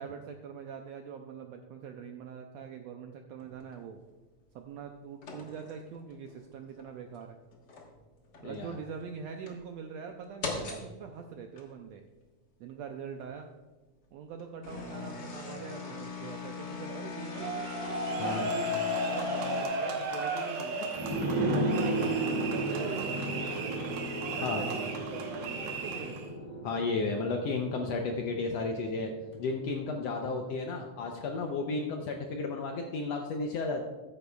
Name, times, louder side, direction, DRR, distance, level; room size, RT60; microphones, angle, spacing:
voice 1, 0.0-4.0 4.5-7.4 8.4-12.0 12.6-13.5 14.1-17.7 18.1-20.9 21.4-24.0 24.3-26.2 31.8-32.1, right 6 dB, 80° right, 4 dB, 1.5 m, -43 dB
sound 1, 3.4-3.8 5.2-6.4 6.8-6.9 7.5-8.0 8.3-8.9 9.5-9.6 10.4-10.9 11.6-11.7 13.2-13.3 14.4-19.6, left 4 dB, 45° left, 1.4 m, -40 dB
voice 2, 8.4-8.7 18.2-18.5 24.4-24.6 26.6-29.1 29.4-33.8, left 3 dB, 80° left, 3 dB, 1.5 m, -33 dB
sound 2, 17.3-26.3, right 1 dB, 65° right, 2.2 m, -35 dB
sound 3, 20.9-30.2 30.5-30.6, right 1 dB, 15° right, 1.6 m, -34 dB
14.0 x 9.8 x 2.3 m, 1.2 s
omnidirectional pair, 3.6 m